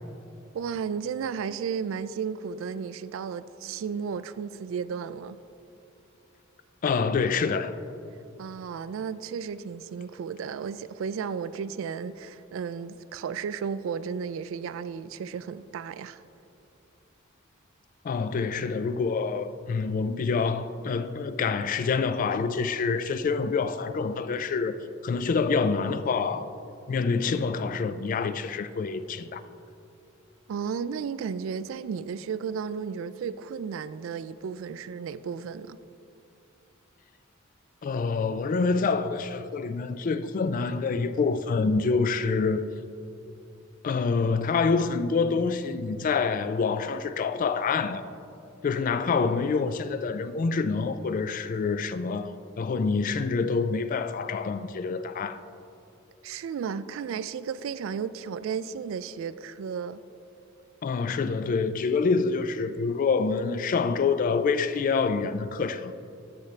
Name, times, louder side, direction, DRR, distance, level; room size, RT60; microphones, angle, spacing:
voice 1, 0.5-5.4 8.4-16.2 30.5-35.8 56.2-60.0, right 6 dB, 70° right, 0.3 m, -34 dB
voice 2, 6.8-7.8 18.0-24.7 25.0-26.5 26.9-29.4 37.8-42.7 43.8-48.0 48.6-55.4 60.8-65.9, left 4 dB, 40° left, 0.3 m, -26 dB
13.0 x 5.9 x 3.2 m
head